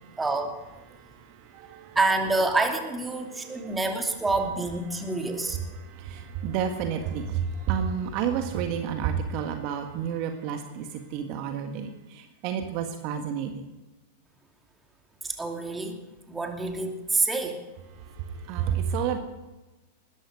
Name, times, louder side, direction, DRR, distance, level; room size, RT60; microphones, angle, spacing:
voice 1, 0.2-0.5 1.9-5.6 15.2-16.0 16.3-17.6, right 3 dB, 10° right, 3 dB, 2.7 m, -27 dB
voice 2, 0.9-2.0 3.2-3.8 4.9-5.2 5.5-13.6 18.0-19.2, right 8 dB, 45° right, 5 dB, 1.7 m, -31 dB
20.5 x 14.0 x 5.1 m, 1.1 s
figure-of-eight pair, 95°, 0 cm